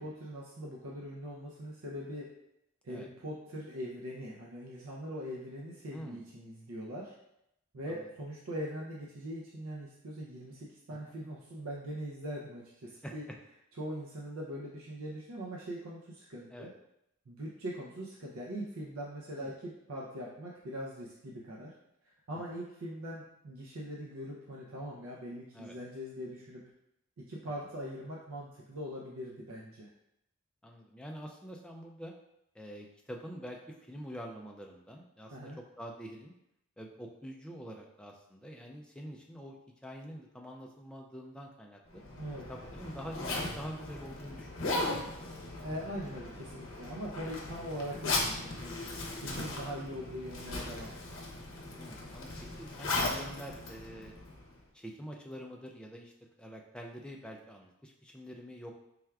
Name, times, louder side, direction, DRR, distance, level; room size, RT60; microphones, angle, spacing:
voice 1, 0.0-2.3 2.8-7.2 7.7-13.3 13.8-16.7 17.3-21.7 22.3-26.6 27.2-29.9 35.3-35.6 42.2-42.5 45.6-48.8 49.2-50.9, equal, 75° right, -3 dB, 0.5 m, -41 dB
voice 2, 5.9-6.2 7.9-8.0 10.9-11.0 13.0-13.2 16.5-16.7 19.3-19.5 22.4-22.6 25.5-25.7 30.6-32.1 32.5-33.6 33.9-35.5 35.8-36.3 36.8-39.6 39.8-42.0 42.5-45.2 49.3-49.5 51.8-54.1 54.7-56.1 56.4-58.7, equal, 5° left, 0 dB, 0.3 m, -46 dB
Zipper (clothing), 41.9-54.6, left 2 dB, 60° left, 0.7 m, -38 dB
4.5 x 3.4 x 2.3 m, 0.82 s
head